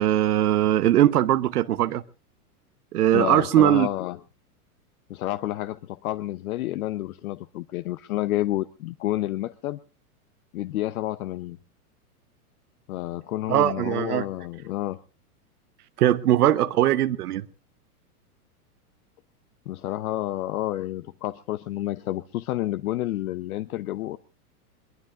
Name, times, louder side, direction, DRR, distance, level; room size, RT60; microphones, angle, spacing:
voice 1, 0.0-2.0 2.9-3.9 13.5-14.2 16.0-17.4, right 13 dB, 75° right, 1.0 m, -20 dB
voice 2, 3.1-4.2 5.1-9.8 10.5-11.6 12.9-15.0 19.7-24.2, left 15 dB, 65° left, 0.8 m, -29 dB
22.5 x 20.0 x 2.5 m
hypercardioid pair, 125°, 46 cm